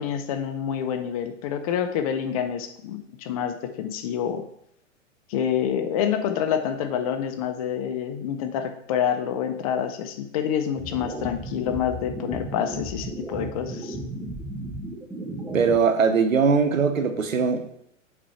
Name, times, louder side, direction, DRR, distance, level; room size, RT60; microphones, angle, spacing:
voice 1, 0.0-4.4 5.3-14.0, left 8 dB, 30° left, 0.6 m, -27 dB
sound 1, 10.8-15.8, right 1 dB, 5° right, 0.7 m, -34 dB
voice 2, 15.5-17.7, right 5 dB, 90° right, 1.0 m, -21 dB
7.5 x 4.3 x 4.3 m
hypercardioid pair, 130°, 39 cm